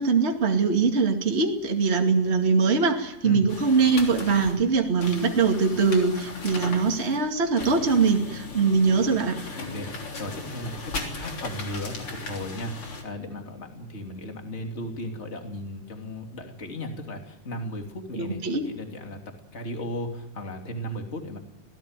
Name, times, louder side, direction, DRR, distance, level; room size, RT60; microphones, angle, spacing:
voice 1, 0.0-9.4 18.1-18.7, right 4 dB, 25° right, 2 dB, 2.3 m, -22 dB
sound 1, 3.5-13.0, left 3 dB, 45° left, 4.2 m, -37 dB
voice 2, 9.7-21.4, left 1 dB, 20° left, 3 dB, 2.9 m, -36 dB
26.0 x 17.5 x 9.1 m, 0.87 s
omnidirectional pair, 3.4 m